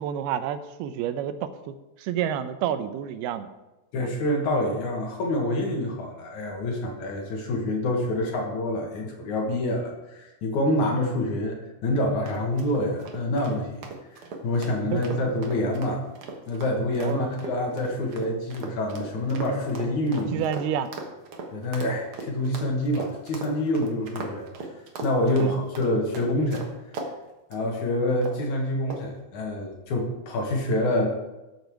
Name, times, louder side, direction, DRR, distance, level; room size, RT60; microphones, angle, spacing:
voice 1, 0.0-3.5 4.0-4.1 14.9-15.2 17.0-17.4 20.3-20.9 25.4-25.6, right 9 dB, 90° right, 11 dB, 2.7 m, -29 dB
voice 2, 3.9-11.6 11.8-13.9 14.4-16.0 16.5-20.4 21.5-24.5 25.0-26.7 27.5-31.1, left 1 dB, 60° left, 0 dB, 2.6 m, -26 dB
sound 1, 12.3-27.1 27.5-27.7 28.2-28.5 28.9-29.2, right 3 dB, 70° right, 1.2 m, -38 dB
13.0 x 6.9 x 4.7 m, 1.0 s
omnidirectional pair, 4.4 m